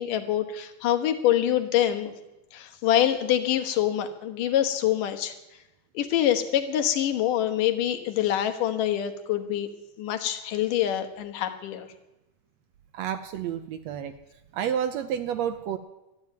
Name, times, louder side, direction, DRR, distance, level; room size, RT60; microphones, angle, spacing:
voice 1, 0.0-2.1 2.5-5.3 5.9-9.7 10.0-11.9, left 11 dB, 90° left, 8 dB, 2.9 m, -25 dB
voice 2, 12.9-14.1 14.5-15.8, right 9 dB, 75° right, 10 dB, 1.7 m, -30 dB
13.0 x 10.5 x 9.2 m, 0.96 s
omnidirectional pair, 3.6 m